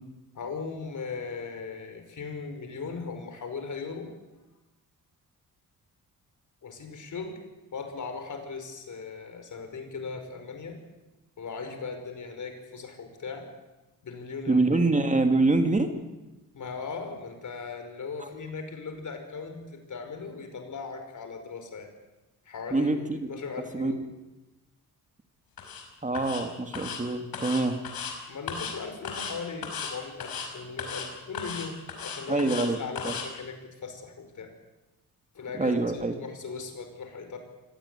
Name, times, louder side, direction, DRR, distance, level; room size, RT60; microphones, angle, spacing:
voice 1, 0.4-4.1 6.6-7.4 7.7-10.8 11.4-13.5 14.0-14.6 16.5-21.9 22.5-24.1 28.3-34.5 35.3-37.4, left 4 dB, 55° left, 6 dB, 5.4 m, -38 dB
voice 2, 14.5-15.9 22.7-23.3 23.7-23.9 26.0-27.8 32.3-32.8 33.0-33.1 35.6-36.2, right 2 dB, 20° right, 6 dB, 2.1 m, -25 dB
sound 1, 25.6-25.8 26.1-26.4 26.7-27.0 27.3-28.1 28.5-28.7 29.0-29.3 29.6-29.9 30.2-30.5 30.8-31.1 31.3-32.7 33.0-33.2, left 6 dB, 75° left, 5.5 m, -35 dB
24.5 x 18.0 x 9.9 m, 1.1 s
cardioid pair, 110°, 36 cm